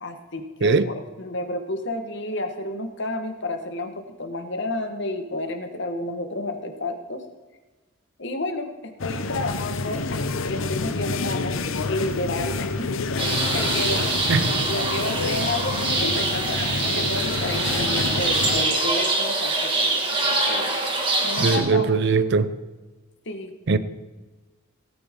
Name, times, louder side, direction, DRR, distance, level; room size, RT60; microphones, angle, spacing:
voice 1, 0.0-7.2 8.2-11.6 11.9-12.9 13.5-14.2 14.6-20.2 20.4-20.8 21.2-22.0 23.2-23.5, left 2 dB, 60° left, 1.4 m, -31 dB
sound 1, 9.0-18.6, left 3 dB, 80° left, 0.7 m, -28 dB
sound 2, 13.2-21.6, right 2 dB, 25° right, 2.1 m, -24 dB
voice 2, 21.4-22.6 23.7-23.8, right 4 dB, 60° right, 0.6 m, -20 dB
17.5 x 9.2 x 3.7 m
head